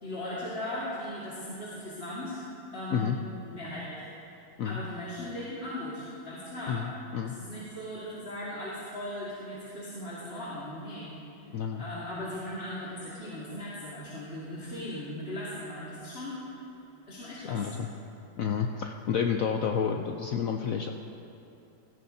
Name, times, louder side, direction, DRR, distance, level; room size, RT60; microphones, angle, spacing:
voice 1, 0.0-2.4 2.7-3.1 3.5-4.0 4.3-6.8 7.2-11.1 11.8-16.4 17.1-17.7, left 1 dB, 35° left, -9 dB, 2.0 m, -38 dB
voice 2, 6.7-7.3 11.5-11.8 17.4-17.9 18.4-20.9, left 7 dB, 85° left, 4 dB, 0.7 m, -30 dB
17.0 x 16.0 x 2.7 m, 2.8 s
omnidirectional pair, 2.1 m